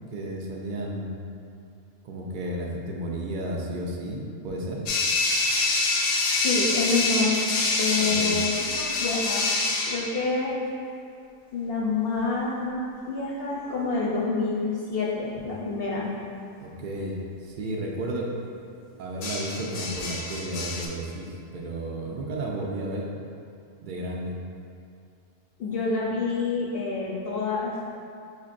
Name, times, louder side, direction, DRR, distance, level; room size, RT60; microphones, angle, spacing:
voice 1, 0.1-1.1 2.0-4.8 8.0-8.4 16.6-18.3 19.0-23.1 23.8-24.4, right 1 dB, 65° right, -2 dB, 0.4 m, -33 dB
sound 1, 4.9-10.2 13.7-14.0 19.2-20.9, left 3 dB, 85° left, 1.0 m, -26 dB
voice 2, 6.4-7.4 7.8-9.5 9.9-10.6 11.5-16.1 25.6-27.7, left 3 dB, 60° left, -5 dB, 0.7 m, -27 dB
5.4 x 3.2 x 2.4 m, 2.5 s
omnidirectional pair, 1.3 m